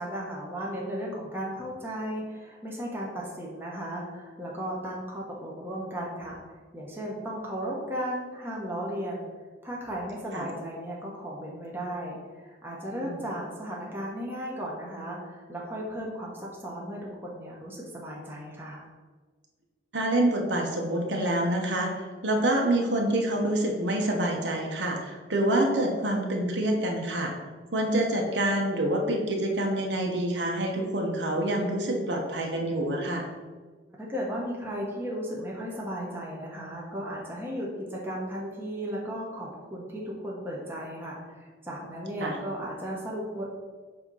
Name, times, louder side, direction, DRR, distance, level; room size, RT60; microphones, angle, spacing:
voice 1, 0.0-6.4 6.7-9.3 9.6-18.9 34.0-43.5, equal, 10° right, -4 dB, 1.0 m, -35 dB
voice 2, 19.9-27.3 27.7-33.3 42.2-42.3, right 1 dB, 70° right, 1 dB, 1.2 m, -27 dB
7.8 x 2.9 x 5.5 m, 1.4 s
head